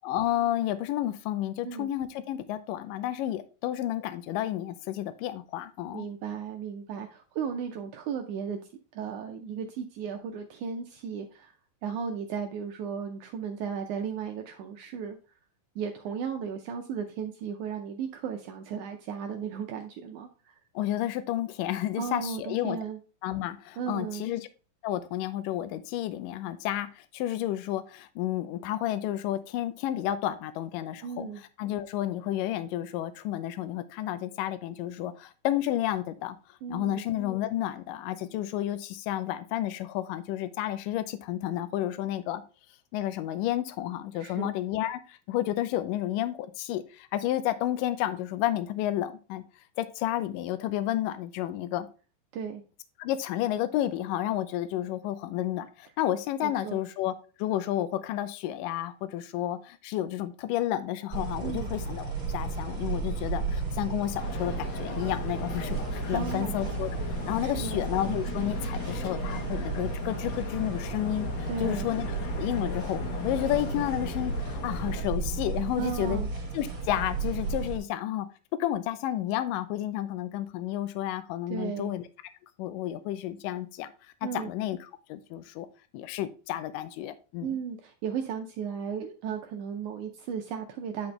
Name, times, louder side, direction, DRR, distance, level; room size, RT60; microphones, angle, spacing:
voice 1, 0.0-6.1 20.8-22.8 23.2-24.5 24.8-31.3 31.6-36.4 36.7-42.4 42.9-49.4 49.8-51.9 53.0-66.9 67.3-72.1 72.3-76.2 76.5-78.3 78.6-82.0 82.6-83.9 84.2-84.8 85.1-85.7 85.9-87.6, left 13 dB, 80° left, 11 dB, 2.2 m, -31 dB
voice 2, 5.9-8.6 8.9-11.5 11.8-15.2 15.7-20.6 22.0-23.0 23.8-24.2 31.0-31.4 36.6-37.0 44.1-44.5 52.3-52.6 56.4-56.8 61.4-61.7 66.1-66.6 67.4-67.8 71.5-71.9 75.8-76.3 81.5-81.9 84.2-84.5 87.4-91.1, right 7 dB, 80° right, 4 dB, 1.8 m, -35 dB
sound 1, 61.1-77.8, right 4 dB, 40° right, 2.3 m, -34 dB
sound 2, 64.1-75.0, left 4 dB, 60° left, 2.0 m, -37 dB
10.5 x 4.0 x 3.2 m, 0.35 s
omnidirectional pair, 4.1 m